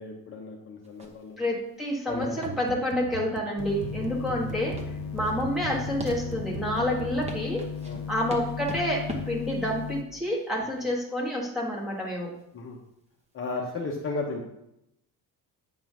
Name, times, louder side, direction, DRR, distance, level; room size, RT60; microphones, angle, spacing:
voice 1, 0.0-1.4 2.1-2.4 4.0-4.2 7.8-8.0 12.5-12.8 13.3-14.4, left 3 dB, 35° left, -1 dB, 0.9 m, -34 dB
sound 1, 0.8-13.5, right 1 dB, 15° right, 1.0 m, -44 dB
voice 2, 1.4-4.8 5.1-7.7 8.1-12.3, left 1 dB, ahead, -5 dB, 1.6 m, -29 dB
sound 2, 2.1-7.8, right 9 dB, 45° right, 0.5 m, -40 dB
sound 3, 3.6-10.0, left 8 dB, 70° left, 0.6 m, -36 dB
8.9 x 3.8 x 6.1 m, 0.82 s
cardioid pair, 170°, 38 cm